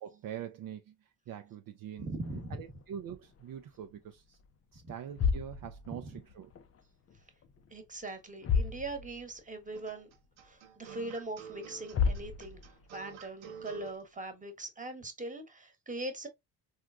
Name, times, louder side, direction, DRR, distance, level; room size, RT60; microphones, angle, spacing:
voice 1, 0.0-2.1 2.5-4.4 4.7-6.5, right 9 dB, 55° right, 0.5 m, -44 dB
voice 2, 2.0-2.6 4.8-4.9 5.9-6.1 7.7-10.1 10.4-16.3, right 2 dB, 20° right, 1.2 m, -41 dB
sound 1, 2.2-3.9 4.2-4.5 5.0-6.8 7.1-7.8 8.0-8.1 8.4-9.4 9.7-9.8 10.5-10.6 11.6-11.7 11.9-12.9, left 6 dB, 35° left, 0.4 m, -34 dB
sound 2, 9.7-14.0, right 7 dB, 85° right, 0.8 m, -48 dB
3.6 x 2.3 x 2.4 m
supercardioid pair, 55°, 43 cm